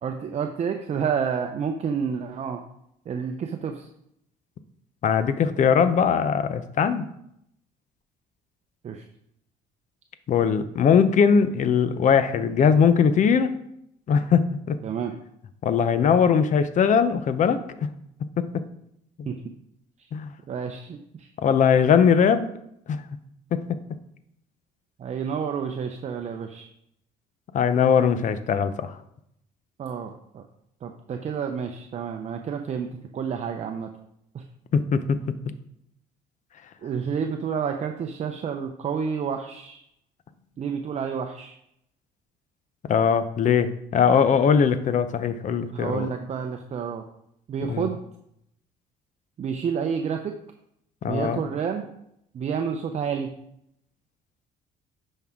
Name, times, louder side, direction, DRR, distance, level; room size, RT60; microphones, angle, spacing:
voice 1, 0.0-2.6 3.1-3.9 8.8-9.0 14.8-15.2 19.3-19.4 20.5-21.3 25.0-26.7 29.8-30.4 30.8-33.9 34.3-34.4 36.8-39.8 40.6-41.6 45.7-47.0 47.5-48.0 49.4-50.3 51.0-51.9 52.3-53.3, right 6 dB, 40° right, 4 dB, 0.7 m, -29 dB
voice 2, 5.0-7.1 10.3-13.5 14.1-14.8 15.6-17.9 18.4-18.5 19.2-19.3 20.1-20.3 21.4-22.5 22.9-23.0 23.5-23.6 27.5-28.9 34.7-35.2 42.9-46.1 47.7-47.9 51.0-51.4, left 7 dB, 50° left, 12 dB, 0.7 m, -20 dB
10.5 x 5.5 x 3.7 m, 0.76 s
cardioid pair, 110°, 17 cm